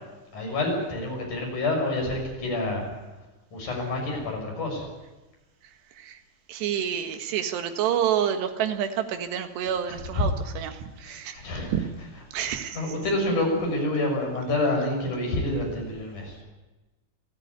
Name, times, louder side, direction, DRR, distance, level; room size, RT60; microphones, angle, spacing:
voice 1, 0.3-2.8 3.5-4.9 9.9-10.3 11.0-16.4, left 2 dB, 45° left, 1 dB, 7.9 m, -28 dB
voice 2, 6.5-11.4 11.7-11.8 12.3-12.9, right 9 dB, 80° right, 7 dB, 3.7 m, -28 dB
27.5 x 14.5 x 9.7 m, 1.1 s
omnidirectional pair, 4.8 m